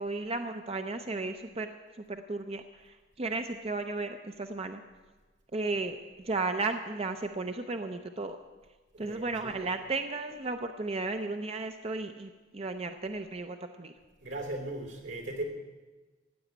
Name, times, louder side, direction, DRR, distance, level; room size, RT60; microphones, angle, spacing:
voice 1, 0.0-1.7 2.1-4.8 5.5-6.0 6.3-8.4 9.0-13.9, right 3 dB, 35° right, 7 dB, 0.6 m, -34 dB
voice 2, 8.9-9.5 14.2-15.4, right 2 dB, 80° right, 4 dB, 3.1 m, -38 dB
16.0 x 8.5 x 9.2 m, 1.3 s
head